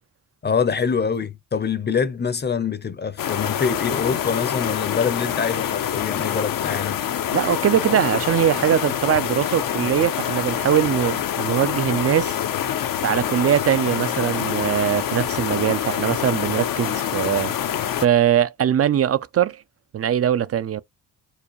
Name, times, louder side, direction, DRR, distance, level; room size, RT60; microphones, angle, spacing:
voice 1, 0.4-7.0, left 6 dB, 30° left, 0.7 m, -25 dB
sound 1, 3.2-18.1, left 10 dB, 60° left, 0.7 m, -26 dB
voice 2, 7.3-12.4 13.0-19.6 19.9-20.8, right 10 dB, 40° right, 0.4 m, -21 dB
4.7 x 2.2 x 3.0 m
cardioid pair, 85°, 37 cm